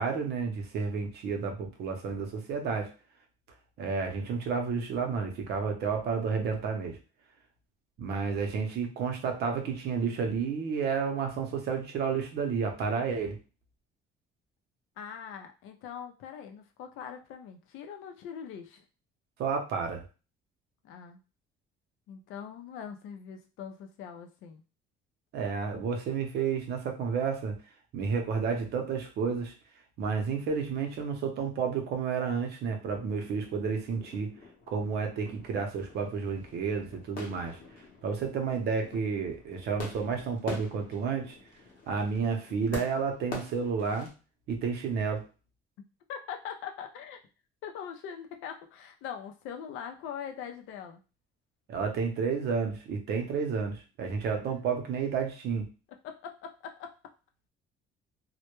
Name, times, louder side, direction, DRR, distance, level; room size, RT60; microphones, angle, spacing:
voice 1, 0.0-2.9 3.8-7.0 8.0-13.4 19.4-20.0 25.3-27.6 27.9-29.5 30.0-34.3 34.7-37.6 38.0-41.3 41.9-44.1 44.5-45.2 51.7-55.7, right 5 dB, 55° right, 3 dB, 0.6 m, -31 dB
voice 2, 15.0-18.8 20.8-21.2 22.1-24.6 46.1-47.2 47.6-51.0 56.0-56.9, left 8 dB, 80° left, 5 dB, 0.5 m, -42 dB
sound 1, 32.8-44.1, left 3 dB, 45° left, 0.7 m, -46 dB
2.1 x 2.1 x 2.9 m, 0.32 s
cardioid pair, 175°, 20 cm